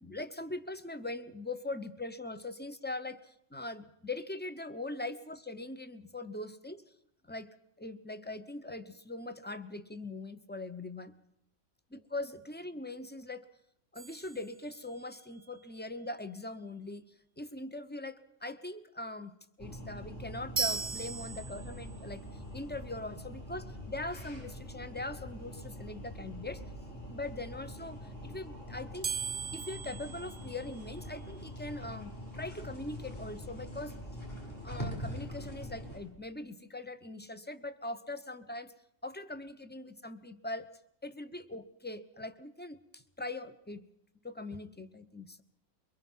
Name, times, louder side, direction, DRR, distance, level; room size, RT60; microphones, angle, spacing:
voice 1, 0.0-3.2 3.5-6.8 7.2-7.5 7.8-11.1 11.9-13.5 13.9-17.0 17.4-26.6 27.1-29.1 29.5-34.0 34.6-38.7 39.0-40.7 41.0-43.9 44.2-45.4, left 2 dB, 10° left, 11 dB, 0.7 m, -41 dB
sound 1, 13.9-15.2 20.5-22.0 29.0-31.2, right 6 dB, 35° right, 0.8 m, -38 dB
sound 2, 19.6-36.0, equal, 40° left, 7.3 m, -44 dB
23.5 x 22.5 x 5.6 m, 0.78 s
omnidirectional pair, 1.5 m